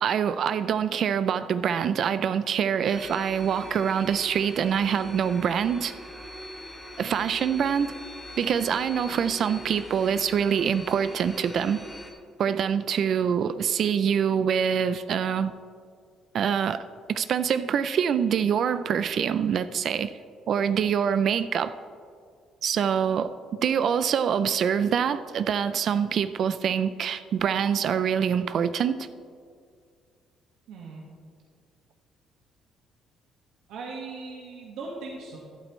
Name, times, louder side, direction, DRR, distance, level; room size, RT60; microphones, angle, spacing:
voice 1, 0.0-5.9 7.0-8.0 8.4-11.8 12.4-15.5 16.3-16.8 17.1-20.1 20.5-21.8 22.6-29.1, right 8 dB, 45° right, 13 dB, 0.3 m, -25 dB
sound 1, 2.9-12.1, left 1 dB, 5° left, 1.1 m, -41 dB
voice 2, 30.7-31.0 33.7-35.4, right 3 dB, 75° right, -2 dB, 1.5 m, -38 dB
12.5 x 12.0 x 3.1 m, 2.2 s
cardioid pair, 165°, 0 cm